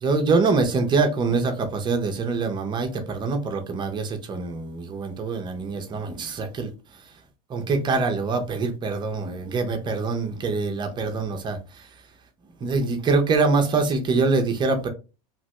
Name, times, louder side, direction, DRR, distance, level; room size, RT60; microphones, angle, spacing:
voice 1, 0.0-6.7 7.5-11.9 12.6-14.9, right 4 dB, 25° right, 0.7 m, -24 dB
2.9 x 2.5 x 3.2 m
supercardioid pair, 125°, 18 cm